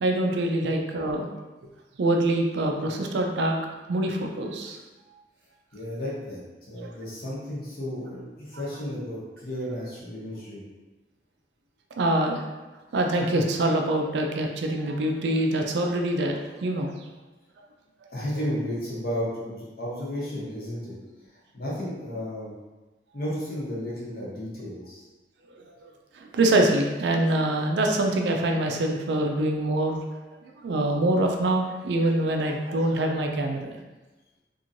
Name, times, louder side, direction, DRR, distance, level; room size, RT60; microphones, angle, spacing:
voice 1, 0.0-1.3 2.0-3.6 3.9-4.8 6.8-6.9 8.5-8.6 12.0-12.4 12.9-17.1 17.6-17.7 25.5-25.9 26.1-30.0 30.4-33.8, right 1 dB, 75° right, 3 dB, 0.4 m, -25 dB
voice 2, 5.7-10.6 18.1-20.9 21.5-22.5 23.1-25.0, equal, 55° left, -6 dB, 0.9 m, -33 dB
2.9 x 2.6 x 2.5 m, 1.2 s
head